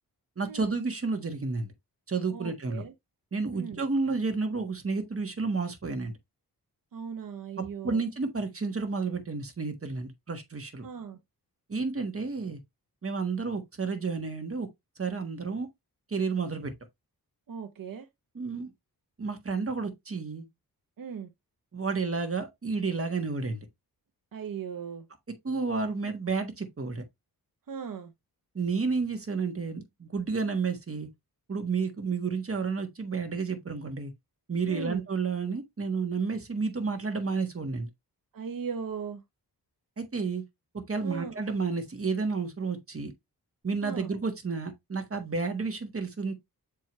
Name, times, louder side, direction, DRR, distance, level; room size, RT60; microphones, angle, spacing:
voice 1, 0.4-1.7 2.1-2.8 3.3-6.1 7.6-10.9 11.7-12.6 13.0-14.7 15.0-15.7 16.1-16.7 18.3-18.7 19.2-20.5 21.7-23.6 25.4-27.0 28.5-31.1 31.5-34.1 34.5-37.9 40.0-40.4 40.7-43.1 43.6-46.3, right 4 dB, 35° right, 1.5 m, -31 dB
voice 2, 2.3-2.9 3.5-3.8 6.9-8.0 10.8-11.2 17.5-18.1 21.0-21.3 24.3-25.1 27.7-28.1 34.7-35.0 38.3-39.2 41.0-41.4 43.8-44.1, right 6 dB, 60° right, 0.8 m, -38 dB
6.8 x 4.7 x 3.1 m
wide cardioid pair, 85°, 38 cm